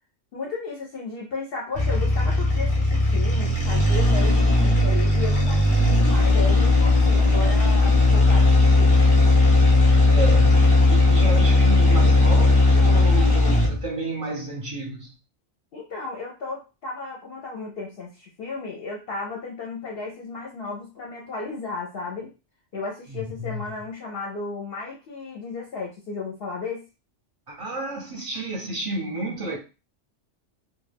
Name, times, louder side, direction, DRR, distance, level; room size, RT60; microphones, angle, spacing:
voice 1, 0.3-9.0 15.7-22.3 22.7-26.8, left 4 dB, 60° left, 0.7 m, -34 dB
sound 1, 1.7-13.9, left 2 dB, 30° left, 0.8 m, -17 dB
voice 2, 9.8-15.1 23.1-23.6 27.5-29.6, right 1 dB, 35° right, 0.6 m, -31 dB
2.3 x 2.2 x 3.3 m
omnidirectional pair, 1.3 m